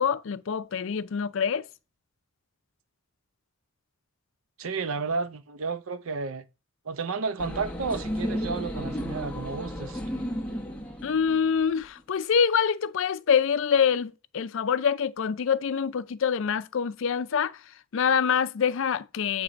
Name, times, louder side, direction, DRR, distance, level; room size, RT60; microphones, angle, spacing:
voice 1, 0.0-1.6 11.0-17.6 17.9-19.4, left 7 dB, 65° left, 0.4 m, -25 dB
voice 2, 4.6-6.5 6.8-10.0, right 4 dB, 75° right, 0.6 m, -32 dB
sound 1, 7.4-11.8, equal, 5° left, 0.9 m, -33 dB
8.5 x 3.3 x 5.0 m
head